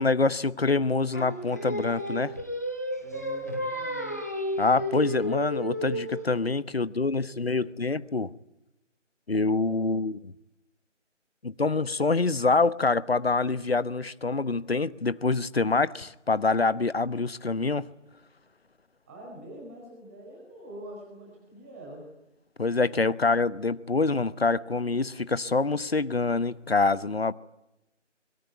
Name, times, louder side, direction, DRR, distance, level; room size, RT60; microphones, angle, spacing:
voice 1, 0.0-2.3 4.6-8.3 9.3-10.3 11.4-17.9 22.6-27.3, left 3 dB, 55° left, 1.0 m, -26 dB
Singing, 1.1-6.3, equal, 15° left, 1.1 m, -32 dB
voice 2, 3.0-4.3 19.1-22.1, right 1 dB, 10° right, 4.4 m, -44 dB
25.0 x 23.0 x 9.3 m
figure-of-eight pair, 170°, 37 cm